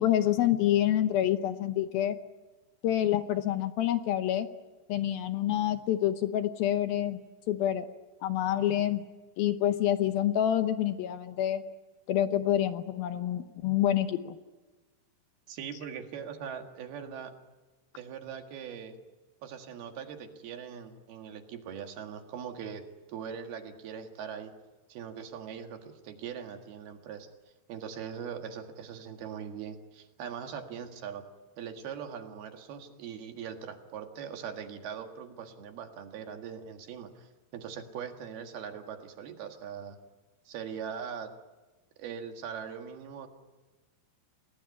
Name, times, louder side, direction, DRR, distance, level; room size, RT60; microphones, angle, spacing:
voice 1, 0.0-2.2 2.8-4.5 4.9-7.2 7.5-7.9 8.2-9.0 9.4-11.6 12.1-14.4, left 11 dB, 70° left, 9 dB, 2.5 m, -27 dB
voice 2, 15.5-17.4 17.9-19.0 19.4-24.5 24.9-27.3 27.7-31.3 31.6-40.0 40.5-41.3 42.0-43.3, right 7 dB, 70° right, 5 dB, 3.6 m, -41 dB
29.0 x 19.5 x 9.8 m, 1.2 s
omnidirectional pair, 4.9 m